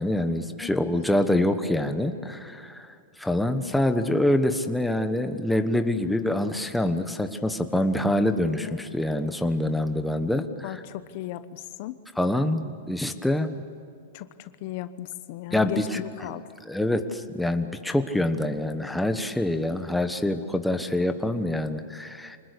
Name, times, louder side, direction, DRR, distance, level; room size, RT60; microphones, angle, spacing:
voice 1, 0.0-2.9 3.2-10.8 12.2-13.6 15.5-16.0 16.7-22.4, left 1 dB, 5° left, 7 dB, 1.2 m, -25 dB
voice 2, 0.6-1.0 8.5-8.9 10.6-12.0 14.1-16.5, left 13 dB, 50° left, 13 dB, 0.9 m, -37 dB
25.5 x 20.0 x 8.4 m, 2.4 s
supercardioid pair, 145°, 0 cm